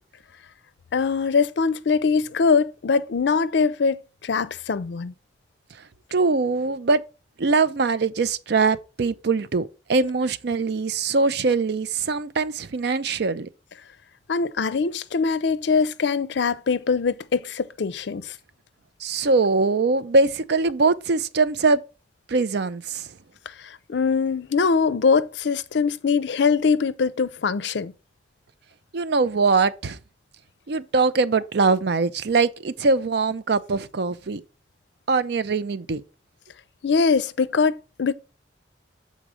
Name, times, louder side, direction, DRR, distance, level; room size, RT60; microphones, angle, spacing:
voice 1, 0.9-5.1 14.3-18.3 23.5-27.9 36.8-38.1, left 5 dB, 65° left, 0.5 m, -22 dB
voice 2, 6.1-7.0 7.4-13.5 19.0-21.8 22.3-23.1 28.9-30.0 30.7-34.4 35.1-36.0, right 4 dB, 65° right, 0.5 m, -22 dB
7.4 x 4.0 x 4.9 m
head